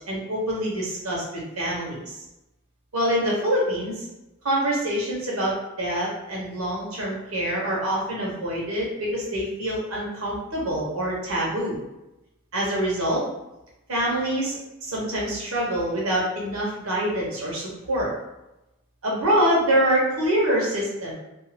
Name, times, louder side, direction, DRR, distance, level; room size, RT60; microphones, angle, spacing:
voice 1, 0.1-2.2 2.9-4.1 4.4-11.8 12.5-13.2 13.9-18.1 19.0-21.1, right 1 dB, 85° right, -4 dB, 1.1 m, -25 dB
2.7 x 2.4 x 2.8 m, 0.95 s
head